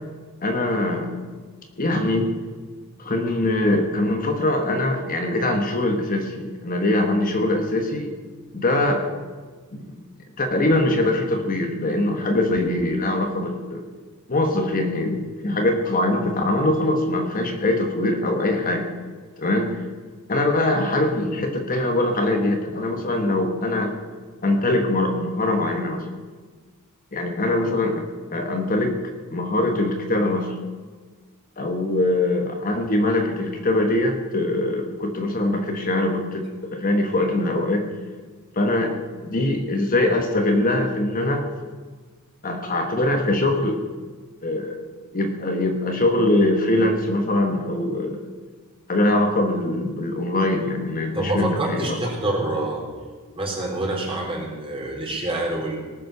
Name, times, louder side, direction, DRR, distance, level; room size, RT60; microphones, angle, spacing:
voice 1, 0.4-1.2 1.8-2.3 3.0-8.1 8.5-9.0 9.7-9.9 10.4-13.8 14.3-18.9 19.4-19.8 20.3-23.9 24.4-26.0 27.1-29.0 29.3-30.6 31.6-37.9 38.5-39.0 39.2-41.5 42.4-43.8 44.4-44.8 45.1-48.3 48.9-52.0, left 1 dB, 40° left, 4 dB, 1.4 m, -22 dB
voice 2, 51.1-52.8 53.3-55.8, right 2 dB, 25° right, -1 dB, 3.7 m, -26 dB
18.5 x 7.7 x 6.8 m, 1.4 s
head